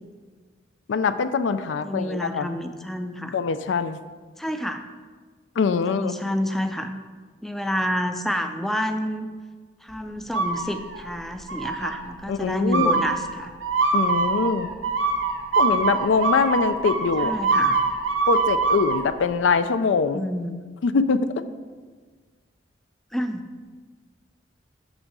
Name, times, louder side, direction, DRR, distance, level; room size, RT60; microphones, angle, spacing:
voice 1, 0.9-2.5 3.3-4.0 5.6-6.1 12.3-13.0 13.9-14.7 15.6-17.3 18.3-20.2 20.8-21.4, left 5 dB, 80° left, 12 dB, 0.4 m, -23 dB
voice 2, 1.8-3.4 4.4-4.8 5.9-6.9 7.4-9.3 9.8-13.5 17.2-17.8 20.1-20.6 23.1-23.5, equal, ahead, 7 dB, 0.3 m, -29 dB
sound 1, 10.3-11.1 11.5-12.0 12.7-19.0, right 4 dB, 90° right, 0.8 m, -24 dB
6.4 x 6.3 x 4.7 m, 1.5 s
head